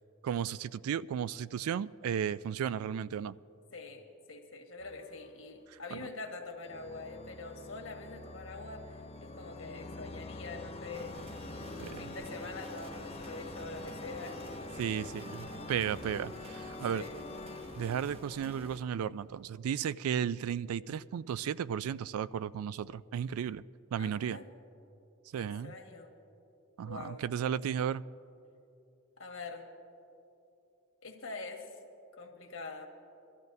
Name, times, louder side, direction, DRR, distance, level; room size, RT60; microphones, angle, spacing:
voice 1, 0.2-3.3 5.9-6.1 11.8-12.2 14.8-17.0 17.8-23.6 23.9-24.4 25.3-25.7 26.8-28.0, right 8 dB, 90° right, 0.3 m, -34 dB
voice 2, 3.7-11.2 11.6-15.1 16.9-17.2 24.0-24.5 25.4-26.1 26.8-27.2 29.2-29.7 31.0-31.7 32.1-32.9, left 3 dB, 70° left, 1.5 m, -45 dB
sound 1, 4.8-6.0 6.6-19.2, left 2 dB, 30° left, 0.4 m, -46 dB
sound 2, 10.9-18.8, right 1 dB, 30° right, 0.8 m, -49 dB
23.0 x 14.0 x 2.7 m
head